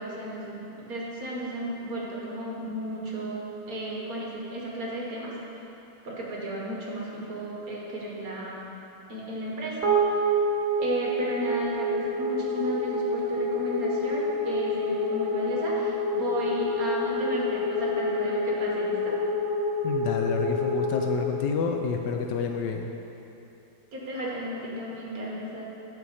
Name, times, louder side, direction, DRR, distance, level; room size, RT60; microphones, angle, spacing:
voice 1, 0.0-5.3 6.0-8.7 9.1-9.8 10.8-19.1 23.9-25.6, right 1 dB, 55° right, -4 dB, 1.7 m, -34 dB
sound 1, 9.8-22.3, left 1 dB, 35° right, 1.6 m, -28 dB
voice 2, 19.8-22.9, left 5 dB, 75° left, 3 dB, 1.1 m, -29 dB
9.0 x 6.6 x 4.2 m, 2.9 s
omnidirectional pair, 2.0 m